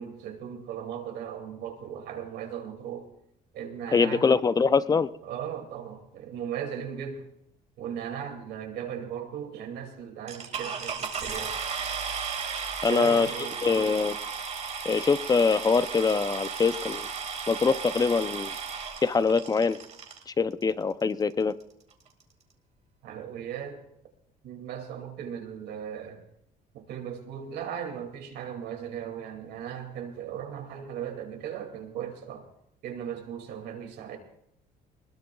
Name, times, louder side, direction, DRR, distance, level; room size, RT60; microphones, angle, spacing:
voice 1, 0.0-3.1 3.5-4.3 5.2-7.3 7.8-11.6 12.8-13.8 23.0-23.8 24.4-26.2 26.7-32.4 32.8-34.2, right 8 dB, 80° right, 4 dB, 2.5 m, -37 dB
voice 2, 3.9-5.1 12.8-14.1 14.8-17.1 17.5-18.5 19.0-19.8 20.3-21.5, left 5 dB, 20° left, 14 dB, 0.6 m, -24 dB
sound 1, 10.3-20.2 21.0-21.1 21.6-21.7 21.9-22.2, right 6 dB, 40° right, 2.1 m, -35 dB
22.0 x 20.0 x 2.3 m, 0.78 s
cardioid pair, 110°, 17 cm